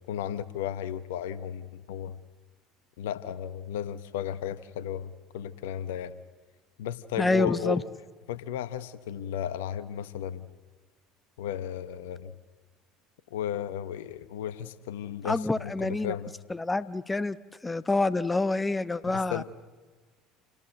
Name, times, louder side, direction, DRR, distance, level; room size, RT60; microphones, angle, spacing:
voice 1, 0.0-2.2 3.0-6.2 6.8-7.8 8.3-10.5 11.4-12.3 13.3-16.3 19.1-19.4, left 10 dB, 75° left, 16 dB, 1.0 m, -34 dB
voice 2, 7.2-7.8 15.2-16.1 16.5-17.4 17.6-19.4, left 2 dB, 15° left, 17 dB, 0.9 m, -27 dB
28.5 x 18.0 x 7.7 m, 1.4 s
hypercardioid pair, 65°, 0 cm